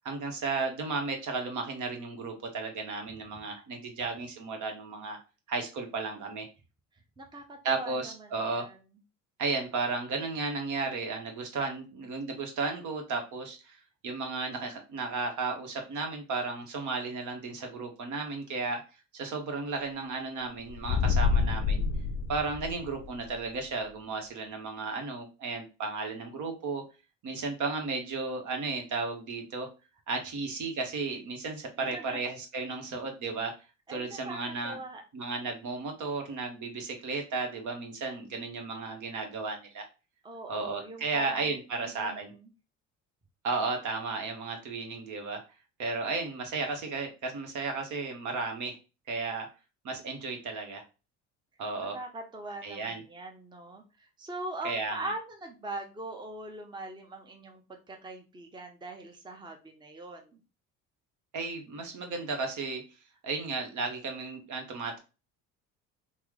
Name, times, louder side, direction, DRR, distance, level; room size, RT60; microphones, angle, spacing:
voice 1, 0.0-5.2 5.5-6.5 7.6-8.7 9.4-18.8 19.1-21.8 22.3-26.8 27.2-29.7 30.1-33.5 33.9-34.8 35.1-39.9 40.5-42.3 43.4-45.4 45.8-48.7 49.1-49.5 49.8-50.8 51.6-52.0 52.6-53.0 54.6-55.0 61.3-62.8 63.2-65.0, right 4 dB, 55° right, 4 dB, 1.0 m, -34 dB
voice 2, 7.2-8.8 31.8-32.2 33.9-34.4 34.6-35.0 40.2-42.5 51.9-60.4, right 2 dB, 15° right, 3 dB, 0.7 m, -42 dB
sound 1, 20.7-23.2, left 5 dB, 45° left, 0.5 m, -27 dB
3.0 x 2.1 x 3.6 m, 0.31 s
supercardioid pair, 75°, 35 cm